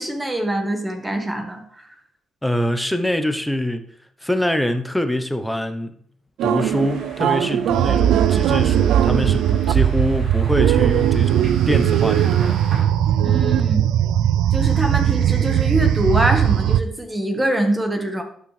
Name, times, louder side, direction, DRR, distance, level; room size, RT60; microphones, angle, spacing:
voice 1, 0.0-1.9 13.2-13.9 14.5-18.2, right 1 dB, 15° right, 1.5 m, -24 dB
voice 2, 2.4-3.9 4.2-6.0 6.4-12.6, left 1 dB, 5° left, 0.8 m, -24 dB
sound 1, 6.4-16.8, right 10 dB, 85° right, 0.4 m, -18 dB
sound 2, 6.5-12.8, right 1 dB, 55° right, 3.2 m, -39 dB
11.0 x 6.2 x 3.4 m
cardioid pair, 90°, 0 cm